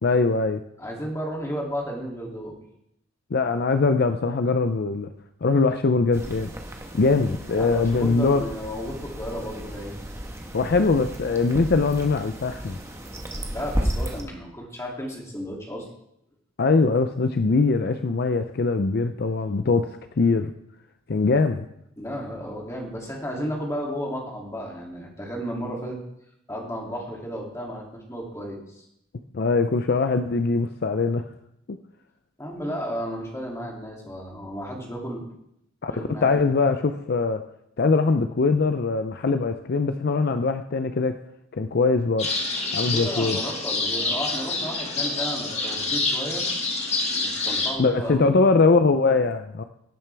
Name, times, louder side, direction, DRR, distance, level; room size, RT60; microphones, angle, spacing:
voice 1, 0.0-0.6 3.3-5.1 5.4-6.5 6.9-8.4 10.5-12.8 16.6-20.5 21.1-21.7 29.3-31.2 35.8-37.4 37.8-41.2 41.5-42.3 42.7-43.4 47.8-49.6, left 3 dB, 55° left, 9 dB, 0.5 m, -22 dB
voice 2, 0.8-2.5 7.5-9.9 13.5-15.8 22.0-26.0 26.5-28.8 32.4-35.2 35.9-36.4 42.9-46.4 47.2-48.3, equal, 15° left, -2 dB, 2.6 m, -33 dB
sound 1, 6.1-14.2, equal, 15° right, 1.2 m, -33 dB
sound 2, 42.2-47.7, left 3 dB, 35° left, 2.0 m, -27 dB
17.5 x 9.0 x 3.4 m, 0.77 s
head